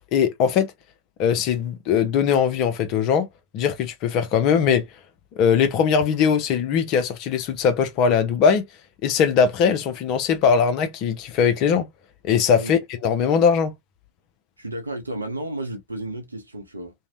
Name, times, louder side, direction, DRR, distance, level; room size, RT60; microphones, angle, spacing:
voice 1, 0.1-0.7 1.2-3.3 3.5-4.9 5.3-8.7 9.0-11.9 12.2-13.7, left 7 dB, 40° left, 0.5 m, -20 dB
voice 2, 14.6-16.9, right 1 dB, 80° right, 0.6 m, -32 dB
2.6 x 2.0 x 2.3 m
figure-of-eight pair, 90°, 0 cm